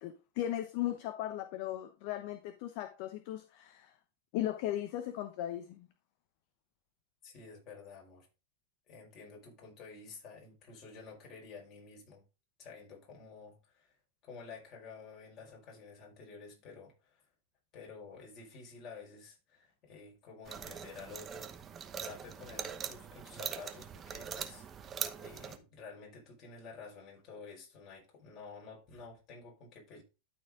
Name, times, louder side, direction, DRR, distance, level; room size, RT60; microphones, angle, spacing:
voice 1, 0.0-3.9 4.3-5.9, left 13 dB, 55° left, 0.9 m, -37 dB
voice 2, 7.2-8.3 8.9-12.2 12.6-14.0 14.2-17.2 17.7-30.0, left 4 dB, 40° left, 5.1 m, -51 dB
sound 1, 20.5-25.6, right 7 dB, 25° right, 1.0 m, -42 dB
12.5 x 4.6 x 3.7 m
supercardioid pair, 130°, 0 cm